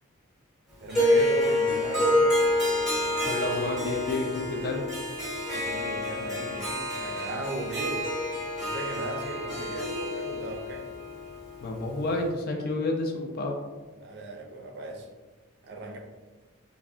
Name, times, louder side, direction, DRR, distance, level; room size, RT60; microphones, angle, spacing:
voice 1, 0.8-2.4 5.5-8.1 8.6-10.9 13.9-15.1 15.6-16.0, right 2 dB, 50° right, 2 dB, 0.4 m, -37 dB
Harp, 0.9-12.2, left 1 dB, ahead, 0.8 m, -28 dB
voice 2, 3.3-4.8 11.6-13.6, left 2 dB, 45° left, 2 dB, 0.4 m, -30 dB
3.3 x 2.1 x 2.4 m, 1.2 s
head